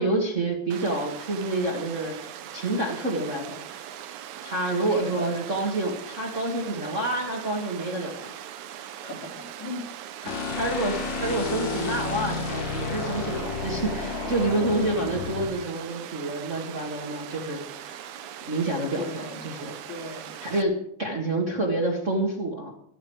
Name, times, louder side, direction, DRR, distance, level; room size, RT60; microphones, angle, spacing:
voice 1, 0.0-3.8 4.4-8.3 10.2-10.3 10.6-18.0 18.4-19.7 20.4-22.7, right 2 dB, 30° right, -1 dB, 1.6 m, -28 dB
Water, 0.7-20.6, right 10 dB, 75° right, 2.2 m, -40 dB
voice 2, 4.9-5.3 9.0-9.9 19.0-19.4 19.9-20.3, left 2 dB, 65° left, -1 dB, 4.3 m, -37 dB
sound 1, 10.3-15.5, left 4 dB, 85° left, 3.6 m, -31 dB
14.5 x 13.0 x 4.7 m, 0.68 s
omnidirectional pair, 3.5 m